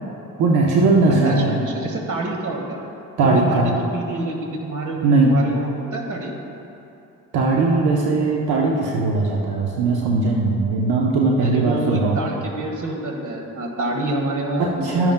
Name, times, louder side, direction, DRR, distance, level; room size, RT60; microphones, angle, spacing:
voice 1, 0.4-1.6 3.2-3.7 5.0-5.3 7.3-12.2 14.6-15.1, right 3 dB, 85° right, -2 dB, 0.9 m, -19 dB
voice 2, 1.1-2.8 3.2-6.3 11.4-15.1, right 2 dB, 55° right, 1 dB, 1.6 m, -27 dB
13.0 x 10.5 x 2.2 m, 2.9 s
cardioid pair, 70°, 36 cm